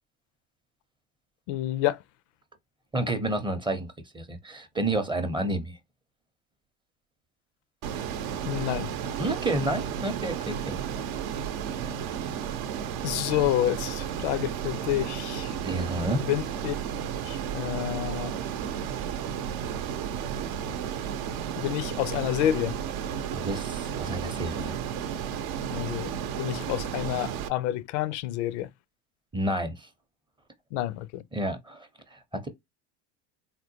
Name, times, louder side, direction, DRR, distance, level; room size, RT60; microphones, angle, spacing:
voice 1, 1.5-2.0 8.4-8.9 13.0-15.6 16.3-16.8 17.3-18.3 21.6-22.8 25.7-28.7 30.7-31.2, left 13 dB, 80° left, 0.5 m, -29 dB
voice 2, 2.9-3.9 4.1-5.8 9.2-10.8 15.6-16.2 23.3-24.8 29.3-29.9 31.3-32.5, right 1 dB, 15° right, 0.6 m, -30 dB
Ocean, 7.8-27.5, right 8 dB, 70° right, 0.7 m, -33 dB
3.7 x 2.1 x 2.7 m
supercardioid pair, 110°, 34 cm